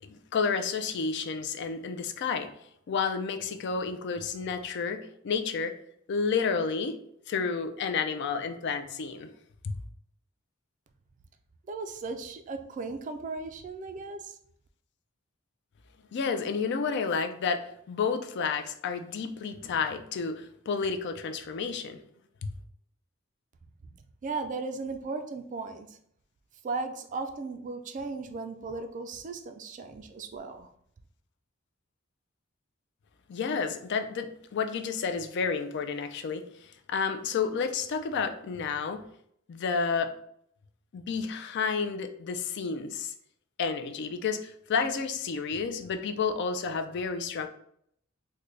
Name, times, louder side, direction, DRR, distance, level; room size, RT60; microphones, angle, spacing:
voice 1, 0.0-2.5 2.9-5.8 6.1-7.0 7.3-9.3 9.6-9.7 16.1-22.0 22.4-22.5 33.3-39.0 39.5-40.1 40.9-43.1 43.6-47.5, left 5 dB, 55° left, 7 dB, 0.4 m, -31 dB
voice 2, 11.7-14.4 24.2-26.0 26.6-30.7, right 3 dB, 40° right, 7 dB, 0.3 m, -36 dB
3.7 x 2.1 x 3.2 m, 0.69 s
head